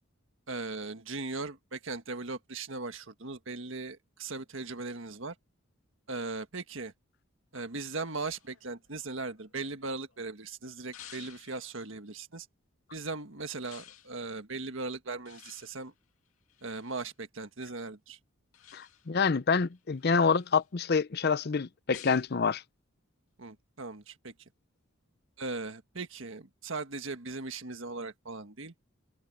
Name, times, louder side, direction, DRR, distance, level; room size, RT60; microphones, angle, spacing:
voice 1, 0.5-5.3 6.1-6.9 7.5-12.5 12.9-15.9 16.6-18.2 23.4-24.3 25.4-28.7, right 3 dB, 65° right, 1.6 m, -38 dB
sound 1, 7.5-10.2 10.9-11.9 13.6-14.2 15.3-17.1 18.5-19.2 19.7-20.7 21.9-22.3, left 11 dB, 90° left, 2.2 m, -54 dB
voice 2, 18.7-22.6, left 5 dB, 50° left, 0.6 m, -27 dB
head